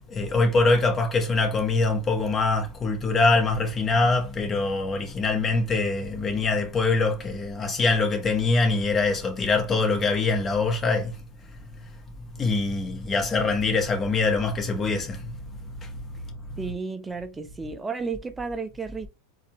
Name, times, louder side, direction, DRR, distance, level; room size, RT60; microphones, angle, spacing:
voice 1, 0.1-11.1 12.4-16.2 16.5-16.6, left 3 dB, 25° left, 1.3 m, -24 dB
voice 2, 16.6-19.1, right 4 dB, 15° right, 0.5 m, -32 dB
4.1 x 2.5 x 3.0 m
hypercardioid pair, 90°, 0 cm